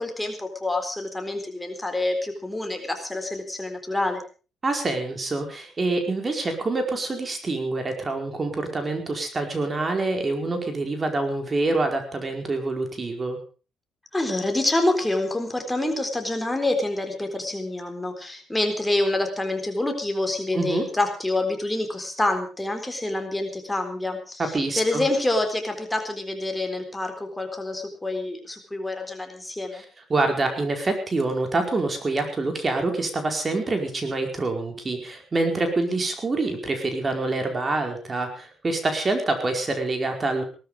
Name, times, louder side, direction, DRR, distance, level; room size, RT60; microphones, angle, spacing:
voice 1, 0.0-4.2 14.1-29.8, left 2 dB, 10° left, 5 dB, 4.1 m, -27 dB
voice 2, 4.6-13.4 20.5-20.8 24.4-25.0 29.7-29.8 30.1-40.4, right 2 dB, 30° right, 5 dB, 4.7 m, -26 dB
18.5 x 13.0 x 5.0 m, 0.36 s
cardioid pair, 90°, 0 cm